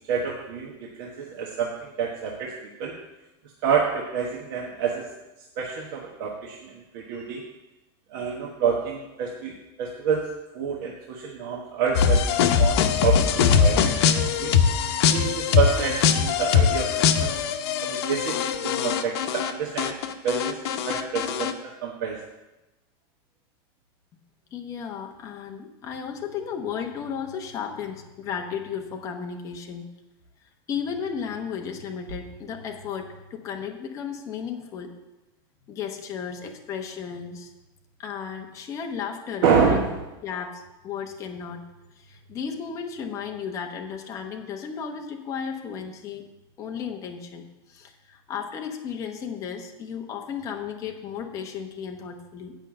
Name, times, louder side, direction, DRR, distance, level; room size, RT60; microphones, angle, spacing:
voice 1, 0.0-3.0 3.6-5.1 5.6-7.4 8.1-10.3 10.5-14.5 15.1-17.3 17.8-20.0 20.2-22.2 39.4-40.0, right 6 dB, 55° right, -1 dB, 1.3 m, -28 dB
sound 1, 11.9-19.5 19.8-21.5, left 7 dB, 85° left, 0.8 m, -22 dB
voice 2, 24.5-29.9 30.7-34.9 35.7-37.5 38.0-39.8 40.2-41.6 42.0-46.2 46.6-52.5, left 7 dB, 25° left, 3 dB, 0.9 m, -34 dB
8.9 x 5.6 x 7.7 m, 1.0 s
supercardioid pair, 175°, 13 cm